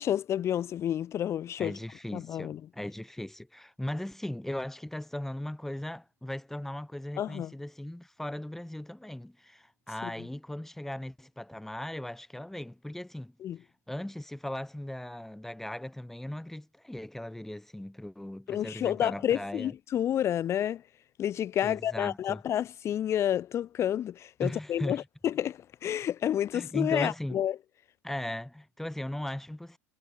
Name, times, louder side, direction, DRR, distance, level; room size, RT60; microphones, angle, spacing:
voice 1, 0.0-1.7 2.1-2.6 7.2-7.5 10.0-10.1 13.4-13.6 18.5-20.8 21.2-27.5, left 10 dB, 30° left, 0.4 m, -30 dB
voice 2, 1.6-13.3 13.9-19.7 21.6-22.4 24.4-25.1 26.5-27.4 28.0-29.8, left 1 dB, 5° left, 2.0 m, -38 dB
figure-of-eight pair, 75°, 9 cm